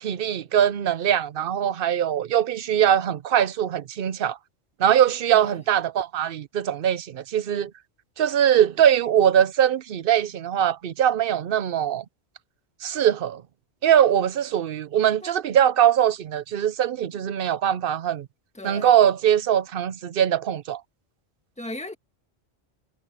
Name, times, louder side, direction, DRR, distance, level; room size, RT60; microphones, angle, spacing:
voice 1, 0.0-4.4 4.8-7.7 8.2-12.0 12.8-13.4 13.8-18.3 18.6-20.8, right 10 dB, 60° right, 0.8 m, -21 dB
voice 2, 18.5-18.9 21.6-21.9, left 1 dB, 5° left, 1.8 m, -36 dB
omnidirectional pair, 1.1 m